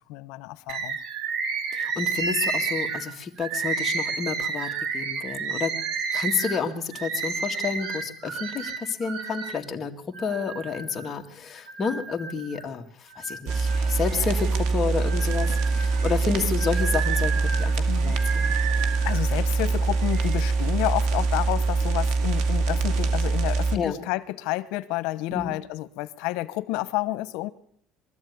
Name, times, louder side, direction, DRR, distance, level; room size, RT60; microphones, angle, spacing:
voice 1, 0.1-1.0 17.9-18.1 18.7-27.5, left 18 dB, 80° left, 1.1 m, -30 dB
Bird, 0.7-9.6 10.1-11.1 11.7-12.7 13.1-14.5 15.0-19.2 19.9-20.4, right 5 dB, 55° right, 2.6 m, -31 dB
voice 2, 1.7-4.7 4.9-5.7 6.1-9.9 10.2-18.6 23.7-24.1 25.3-25.5, left 5 dB, 25° left, 2.0 m, -30 dB
sound 1, 13.5-23.8, right 3 dB, 85° right, 2.4 m, -24 dB
23.0 x 14.0 x 9.5 m
cardioid pair, 160°, 0 cm